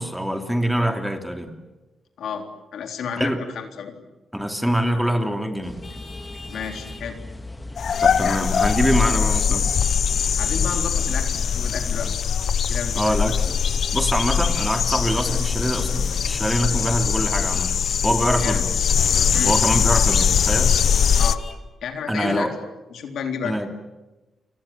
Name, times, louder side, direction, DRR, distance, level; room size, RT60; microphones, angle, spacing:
voice 1, 0.0-1.5 3.2-3.4 4.3-5.8 8.0-9.7 12.9-13.6 13.9-17.7 18.0-18.7 19.4-20.7 22.1-22.5 23.4-23.7, equal, ahead, 5 dB, 3.0 m, -24 dB
voice 2, 2.7-4.0 6.5-7.2 10.4-12.1 12.7-13.2 18.4-18.6 19.3-19.6 21.2-21.4 21.8-22.6 22.9-23.6, left 7 dB, 80° left, 4 dB, 3.7 m, -31 dB
sound 1, 5.6-12.2, left 1 dB, 15° left, 2.6 m, -37 dB
Vehicle horn car horn honking, 5.8-7.1 7.9-8.2 8.6-8.8 9.8-11.2 13.5-14.8 16.5-16.7 17.5-17.7 18.4-18.6 19.4-19.6 20.6-21.6, left 3 dB, 30° left, 4.4 m, -43 dB
sound 2, 7.8-21.3, left 7 dB, 60° left, 1.0 m, -21 dB
30.0 x 24.0 x 7.5 m, 1.1 s
cardioid pair, 115°, 0 cm